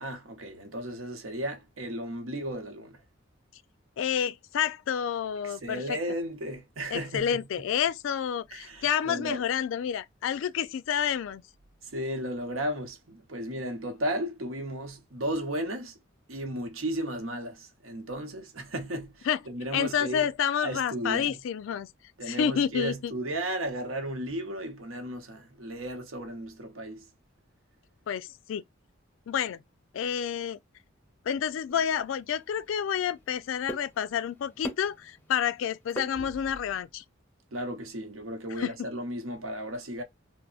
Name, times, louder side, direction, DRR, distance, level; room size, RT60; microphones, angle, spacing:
voice 1, 0.0-3.0 5.4-7.7 8.5-9.4 11.8-15.9 16.3-20.3 20.6-21.4 22.2-27.1 36.2-36.3 37.5-40.0, right 1 dB, 85° right, 0.8 m, -35 dB
voice 2, 4.0-6.0 6.9-11.4 19.3-19.4 19.7-21.9 22.2-23.1 28.1-28.6 29.3-29.6 29.9-30.6 31.3-37.0 38.6-38.7, left 8 dB, 70° left, 0.3 m, -29 dB
sound 1, 31.7-36.8, equal, 10° left, 0.6 m, -44 dB
3.5 x 2.0 x 2.3 m
head